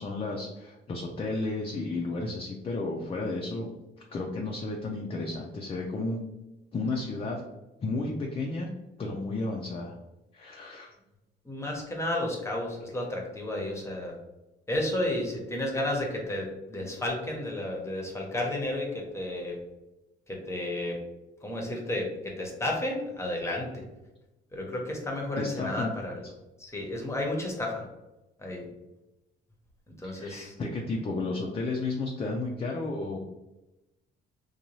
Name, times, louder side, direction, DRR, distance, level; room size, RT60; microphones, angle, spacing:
voice 1, 0.0-3.7 4.1-6.2 6.7-7.4 7.8-8.7 9.0-10.0 10.3-10.9 25.4-25.9 30.0-33.2, left 2 dB, 30° left, 0 dB, 0.4 m, -32 dB
voice 2, 11.4-14.1 14.7-19.6 20.3-21.0 21.4-23.8 24.5-26.3 26.6-27.8 28.4-28.7 30.0-30.5, left 1 dB, 15° left, -1 dB, 0.9 m, -32 dB
2.6 x 2.2 x 3.0 m, 0.98 s
cardioid pair, 90°, 20 cm